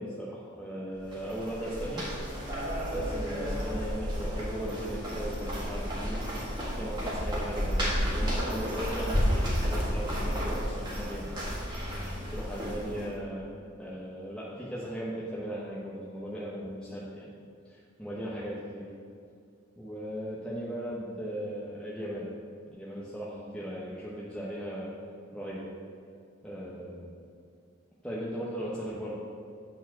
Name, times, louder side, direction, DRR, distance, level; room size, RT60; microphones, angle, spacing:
voice 1, 0.0-2.0 2.9-6.2 6.7-11.2 12.0-13.5 13.8-17.3 17.6-18.8 19.8-22.3 22.7-24.9 25.3-25.7 26.4-27.1 28.0-29.2, equal, 5° left, -8 dB, 0.9 m, -37 dB
sound 1, 1.0-13.1, equal, 25° right, 1.6 m, -32 dB
8.9 x 4.3 x 6.1 m, 2.4 s
head